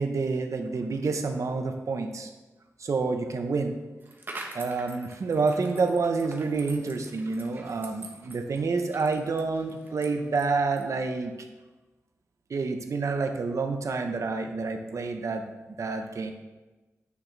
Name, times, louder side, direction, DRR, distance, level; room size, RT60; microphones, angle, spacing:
voice 1, 0.0-2.3 2.8-3.8 4.5-11.3 12.5-16.3, right 4 dB, 65° right, 6 dB, 0.9 m, -28 dB
sound 1, 4.0-11.0, right 2 dB, 35° right, 1.2 m, -45 dB
9.7 x 5.9 x 3.3 m, 1.2 s
wide cardioid pair, 85°, 6 cm